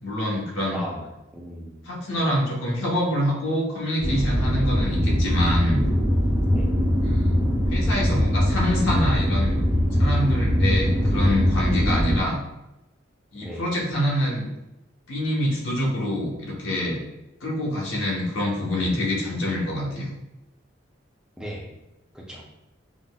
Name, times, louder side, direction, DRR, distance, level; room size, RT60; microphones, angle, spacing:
voice 1, 0.0-0.8 1.8-5.8 7.0-7.3 7.7-9.6 9.9-12.4 13.3-14.5 15.1-17.0 17.4-20.1, left 1 dB, 85° left, -3 dB, 1.1 m, -26 dB
voice 2, 0.7-1.8 6.5-6.8 13.4-13.6 21.4-21.7 22.1-22.4, equal, 5° right, -3 dB, 0.5 m, -36 dB
sound 1, 4.0-12.2, equal, 60° right, 1.0 m, -22 dB
5.2 x 2.1 x 2.2 m, 0.95 s
head